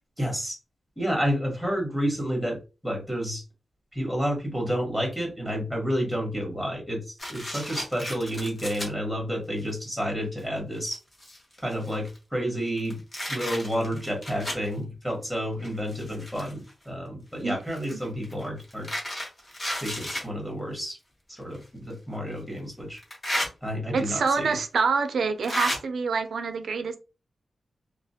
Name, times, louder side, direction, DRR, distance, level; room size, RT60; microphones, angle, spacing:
voice 1, 0.2-0.6 1.0-3.4 3.9-11.0 11.6-13.0 13.3-18.9 19.8-21.0 21.3-23.0 23.6-24.6, equal, 5° left, 1.2 m, -30 dB
sound 1, 7.2-8.9 9.6-9.7 10.4-10.5 10.8-12.2 12.7-14.7 15.6-16.7 17.7-20.3 21.5-21.6 23.0-23.5 24.5-24.6 25.4-25.8, left 1 dB, 30° left, 1.1 m, -33 dB
voice 2, 23.9-27.0, right 5 dB, 75° right, 0.4 m, -26 dB
2.4 x 2.0 x 2.7 m
wide cardioid pair, 85°, 0 cm